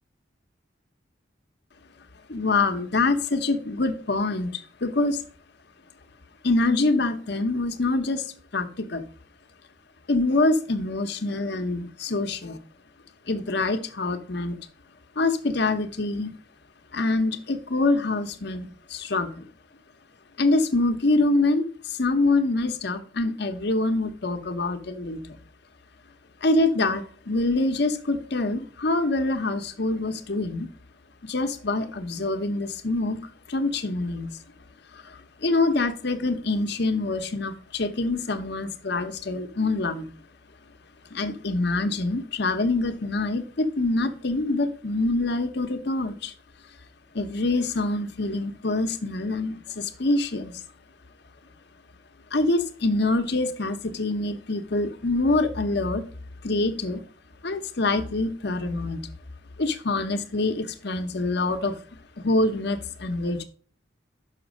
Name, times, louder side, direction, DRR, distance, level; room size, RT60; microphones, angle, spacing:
voice 1, 2.3-5.2 6.4-8.3 8.5-9.0 10.1-12.6 13.3-14.6 15.2-16.3 16.9-19.5 20.4-25.2 26.4-30.7 31.2-34.3 34.9-40.1 41.1-46.3 47.1-50.5 52.3-56.0 56.4-57.0 57.4-59.0 59.6-61.7 62.2-63.4, left 2 dB, 60° left, 8 dB, 0.9 m, -25 dB
6.1 x 5.8 x 6.3 m, 0.43 s
head